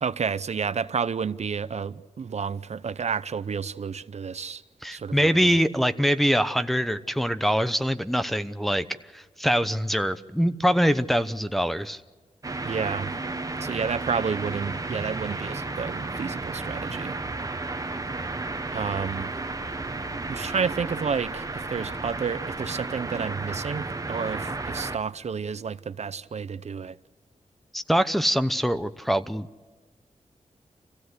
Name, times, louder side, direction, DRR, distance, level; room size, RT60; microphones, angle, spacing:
voice 1, 0.0-4.6 4.9-5.5 12.6-13.1 13.6-17.2 18.7-19.3 20.3-27.0, right 6 dB, 60° right, 0.7 m, -30 dB
voice 2, 4.8-8.8 9.1-12.0 27.7-29.5, equal, ahead, 0.9 m, -24 dB
sound 1, 12.4-25.0, right 3 dB, 25° right, 1.2 m, -33 dB
27.5 x 16.0 x 8.1 m
wide cardioid pair, 95°, 13 cm